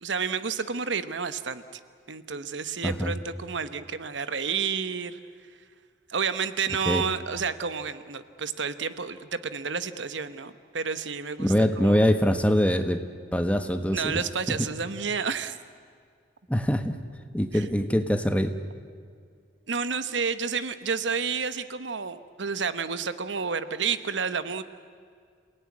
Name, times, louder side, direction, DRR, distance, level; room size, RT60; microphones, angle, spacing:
voice 1, 0.0-1.6 2.1-5.2 6.1-11.5 11.8-12.1 13.9-15.6 17.5-17.6 19.7-24.6, right 5 dB, 75° right, 12 dB, 1.0 m, -30 dB
voice 2, 2.8-3.1 6.9-7.0 11.4-13.0 13.3-14.2 14.5-14.7 16.5-17.0 17.3-18.5, equal, 5° left, 8 dB, 1.2 m, -23 dB
28.0 x 18.0 x 9.7 m, 2.1 s
head